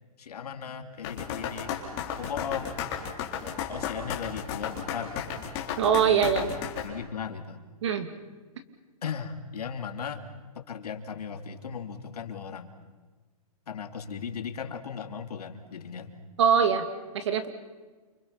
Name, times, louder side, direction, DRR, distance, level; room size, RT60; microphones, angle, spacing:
voice 1, 0.2-1.7 2.1-2.8 3.4-5.4 6.0-6.5 6.8-7.6 9.0-10.3 10.5-12.7 13.7-16.1, left 7 dB, 90° left, 6 dB, 3.0 m, -37 dB
sound 1, 1.0-6.9, left 8 dB, 25° left, 3.6 m, -33 dB
voice 2, 5.8-6.6 7.8-8.1 16.4-16.9 17.1-17.5, right 7 dB, 50° right, 8 dB, 2.7 m, -23 dB
30.0 x 27.0 x 5.9 m, 1.3 s
hypercardioid pair, 175°, 19 cm